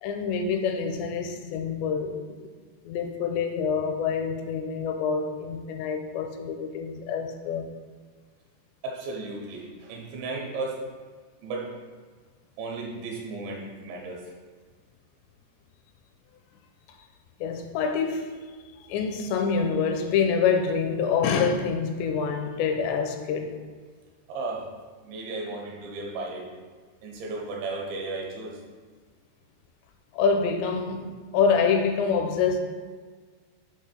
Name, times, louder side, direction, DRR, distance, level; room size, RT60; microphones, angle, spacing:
voice 1, 0.0-2.2 2.9-7.7 17.4-18.3 18.9-23.5 30.1-32.6, left 6 dB, 85° left, 5 dB, 2.8 m, -26 dB
voice 2, 8.8-10.8 11.4-11.7 12.6-14.3 24.3-24.7 25.0-26.5 27.0-28.6, right 3 dB, 85° right, -1 dB, 3.5 m, -34 dB
8.6 x 3.1 x 6.0 m, 1.5 s
omnidirectional pair, 5.1 m